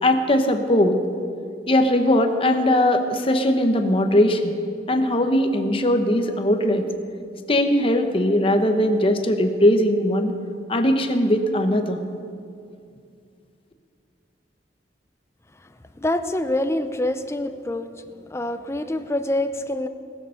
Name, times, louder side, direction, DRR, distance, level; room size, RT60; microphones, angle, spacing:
voice 1, 0.0-1.0 1.7-4.6 4.9-6.9 7.5-10.3 10.7-12.0, left 1 dB, 30° left, 6 dB, 0.9 m, -20 dB
voice 2, 16.0-17.9 18.3-19.9, left 1 dB, 15° left, 9 dB, 0.6 m, -25 dB
20.5 x 7.0 x 6.3 m, 2.4 s
head